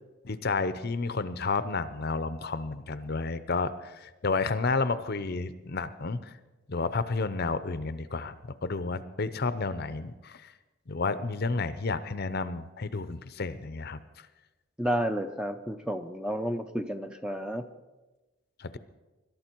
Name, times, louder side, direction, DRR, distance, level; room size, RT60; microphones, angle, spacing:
voice 1, 0.2-6.3 6.7-8.4 8.6-10.4 10.9-14.0 18.6-18.8, left 3 dB, 45° left, 13 dB, 0.6 m, -31 dB
voice 2, 14.8-17.6, equal, 5° right, 7 dB, 0.5 m, -31 dB
21.5 x 12.0 x 4.5 m, 1.1 s
head